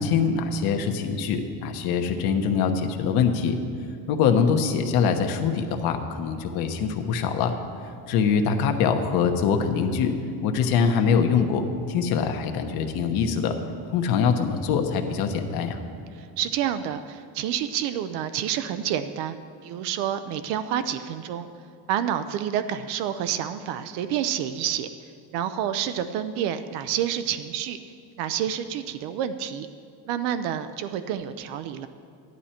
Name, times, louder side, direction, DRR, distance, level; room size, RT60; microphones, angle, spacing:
voice 1, 0.0-3.6 4.1-7.5 8.1-10.1 10.4-13.6 13.9-15.8, left 6 dB, 70° left, 5 dB, 1.2 m, -23 dB
voice 2, 16.2-19.4 19.6-21.5 21.9-24.9 25.3-27.8 28.2-29.7 30.1-31.9, right 10 dB, 85° right, 10 dB, 0.7 m, -28 dB
14.0 x 11.0 x 4.4 m, 2.5 s
cardioid pair, 170°, 39 cm